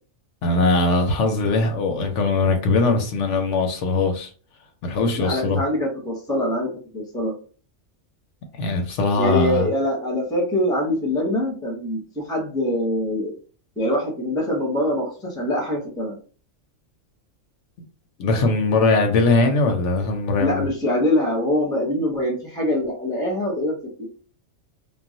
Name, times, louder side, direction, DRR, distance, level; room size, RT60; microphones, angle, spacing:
voice 1, 0.4-4.3 4.8-5.6 8.5-9.7 18.2-20.7, left 3 dB, 70° left, 4 dB, 0.9 m, -20 dB
voice 2, 5.2-7.3 9.2-13.3 13.8-16.2 20.4-24.1, left 1 dB, 5° left, -1 dB, 0.6 m, -24 dB
2.4 x 2.1 x 3.8 m, 0.40 s
omnidirectional pair, 1.4 m